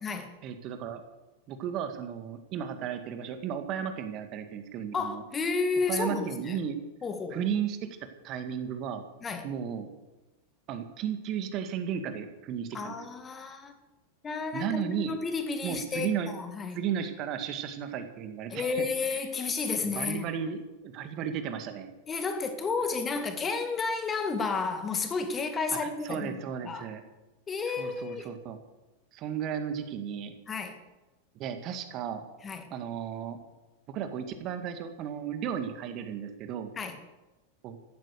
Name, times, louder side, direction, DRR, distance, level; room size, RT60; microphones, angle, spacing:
voice 1, 0.4-1.0 1.5-5.2 5.9-6.8 7.3-7.9 8.2-9.0 9.4-9.9 10.7-13.0 14.5-15.2 15.6-16.3 16.7-18.9 19.1-19.2 19.8-21.9 25.8-27.0 27.8-28.6 29.1-30.3 31.4-32.3 32.7-33.4 33.9-36.7 37.6-37.8, right 8 dB, 35° right, 8 dB, 2.0 m, -34 dB
voice 2, 4.9-6.6 7.0-7.4 9.2-9.5 12.7-13.7 14.2-16.8 18.5-20.3 22.1-26.9 27.5-28.4 30.5-30.8 32.4-32.7 36.8-37.0, left 4 dB, 20° left, 7 dB, 2.0 m, -32 dB
15.0 x 12.5 x 6.9 m, 1.1 s
figure-of-eight pair, 90°, 0 cm